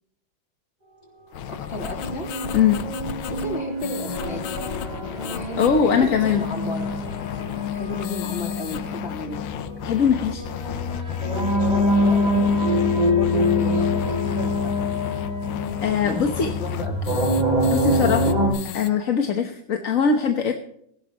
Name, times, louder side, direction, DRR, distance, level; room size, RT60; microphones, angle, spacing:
sound 1, 1.3-18.9, left 10 dB, 85° left, 1.7 m, -35 dB
voice 1, 1.5-2.3 3.3-4.4 5.2-6.8 7.4-9.4 11.2-14.8 16.0-16.2 16.6-17.5, left 1 dB, 30° left, 1 dB, 3.7 m, -34 dB
sound 2, 1.9-18.5, left 1 dB, 20° right, 6.5 m, -25 dB
sound 3, 2.8-16.4, left 1 dB, 65° right, 8.0 m, -42 dB
voice 2, 5.6-6.4 9.8-10.4 15.8-16.5 17.7-18.4 18.7-20.5, left 7 dB, 45° left, 5 dB, 1.3 m, -21 dB
18.0 x 16.0 x 3.0 m, 0.68 s
omnidirectional pair, 2.2 m